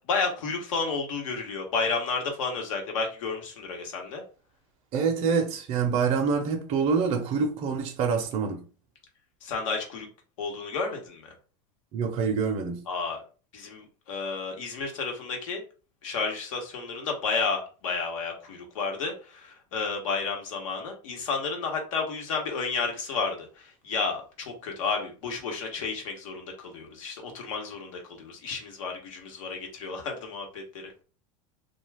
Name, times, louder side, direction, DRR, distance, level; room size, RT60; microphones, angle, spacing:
voice 1, 0.1-4.2 9.4-10.1 10.4-11.3 12.9-13.2 13.5-15.6 16.0-30.9, left 4 dB, 85° left, 1.0 m, -31 dB
voice 2, 4.9-8.7 11.9-12.8, right 5 dB, 40° right, 0.5 m, -26 dB
2.4 x 2.3 x 3.2 m
supercardioid pair, 125°, 16 cm